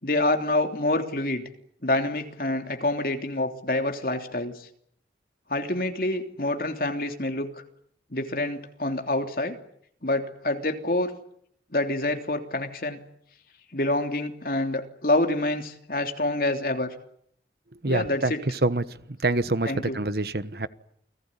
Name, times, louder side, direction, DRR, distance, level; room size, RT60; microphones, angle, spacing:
voice 1, 0.0-1.5 1.8-4.7 5.5-7.6 8.1-9.6 10.0-11.1 11.7-13.0 13.7-16.9 17.9-18.4 19.7-20.0, left 2 dB, 55° left, 5 dB, 3.2 m, -27 dB
voice 2, 17.8-18.3 18.6-18.8 19.2-20.7, right 2 dB, 60° right, 14 dB, 1.3 m, -25 dB
29.0 x 19.0 x 9.9 m, 0.69 s
head